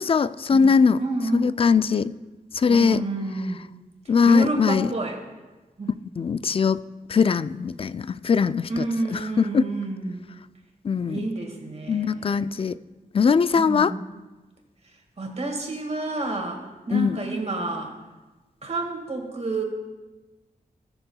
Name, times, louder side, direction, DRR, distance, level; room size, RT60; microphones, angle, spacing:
voice 1, 0.0-1.0 1.3-2.1 2.5-3.0 4.1-4.9 6.2-6.8 7.1-8.8 9.1-9.6 10.8-11.2 11.9-12.7 13.1-13.9 16.9-17.2, left 5 dB, 40° left, 15 dB, 0.3 m, -21 dB
voice 2, 1.0-1.5 2.7-3.6 4.2-5.2 5.8-6.0 8.7-10.2 11.1-12.3 13.5-14.0 15.2-16.6 16.9-17.9 18.6-19.6, right 2 dB, 45° right, 2 dB, 1.8 m, -29 dB
18.5 x 6.8 x 2.3 m, 1.2 s
cardioid pair, 65°, 15 cm